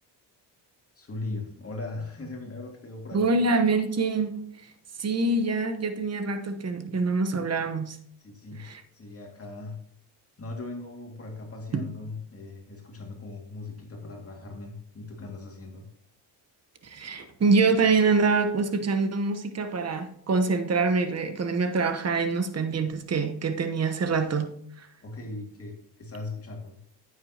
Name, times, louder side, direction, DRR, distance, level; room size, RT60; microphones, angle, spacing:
voice 1, 1.0-3.4 8.2-9.8 10.4-15.9 25.0-26.8, left 3 dB, 30° left, 2.2 m, -39 dB
voice 2, 3.1-4.7 5.0-8.0 8.6-8.8 11.7-11.9 16.8-24.9, right 4 dB, 35° right, 1.1 m, -25 dB
9.3 x 8.5 x 2.9 m
cardioid pair, 85°, 43 cm